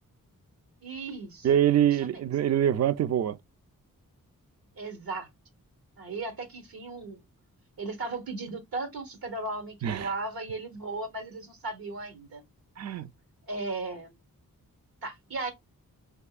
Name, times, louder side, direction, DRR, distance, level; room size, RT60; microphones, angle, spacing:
voice 1, 0.8-1.5 2.1-2.2 4.8-5.3 6.0-7.2 7.8-12.4 13.5-14.1 15.0-15.5, right 3 dB, 85° right, 1.1 m, -36 dB
voice 2, 1.4-3.4 9.8-10.1 12.8-13.1, right 10 dB, 50° right, 0.4 m, -24 dB
3.5 x 2.9 x 2.4 m
cardioid pair, 65°, 35 cm